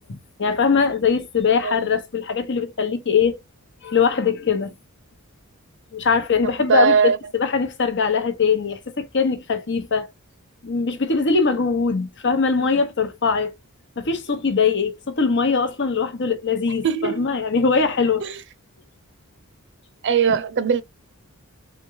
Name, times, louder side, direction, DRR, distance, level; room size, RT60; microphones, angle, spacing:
voice 1, 0.1-3.4 3.8-4.7 5.9-7.1 7.4-10.1 10.6-13.5 14.0-18.2, left 5 dB, 55° left, 1.0 m, -21 dB
voice 2, 6.4-7.2 16.8-17.3 18.2-18.4 20.0-20.8, right 6 dB, 55° right, 0.5 m, -20 dB
4.5 x 2.3 x 4.6 m
head